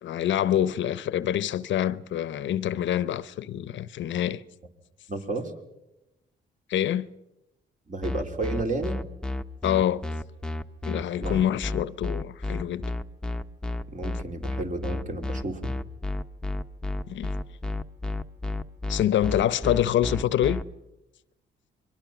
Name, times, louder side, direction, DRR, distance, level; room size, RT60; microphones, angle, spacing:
voice 1, 0.0-4.4 6.7-7.1 9.6-10.0 10.9-12.8 17.1-17.3 18.9-20.6, left 11 dB, 70° left, 0.8 m, -26 dB
voice 2, 5.1-5.5 7.9-9.0 11.2-11.5 13.9-15.7, right 2 dB, 40° right, 3.5 m, -32 dB
sound 1, 8.0-20.6, left 2 dB, 5° left, 1.0 m, -31 dB
28.0 x 22.5 x 6.0 m
cardioid pair, 90°, 20 cm